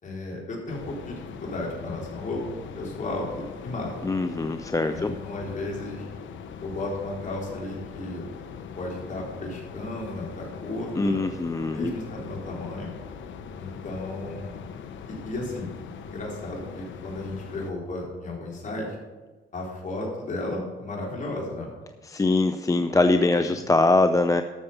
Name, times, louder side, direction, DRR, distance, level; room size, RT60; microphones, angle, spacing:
voice 1, 0.0-4.1 4.9-6.1 6.6-8.3 8.8-11.2 11.7-12.9 13.6-14.6 15.1-15.7 16.0-19.0 19.5-21.7 22.9-23.5, left 2 dB, 40° left, -2 dB, 3.9 m, -34 dB
sound 1, 0.7-17.7, left 6 dB, 75° left, 1.0 m, -41 dB
voice 2, 4.0-5.1 11.0-11.9 22.0-24.4, left 2 dB, 15° left, 8 dB, 0.5 m, -22 dB
12.5 x 6.9 x 5.5 m, 1.3 s
cardioid pair, 90°, 20 cm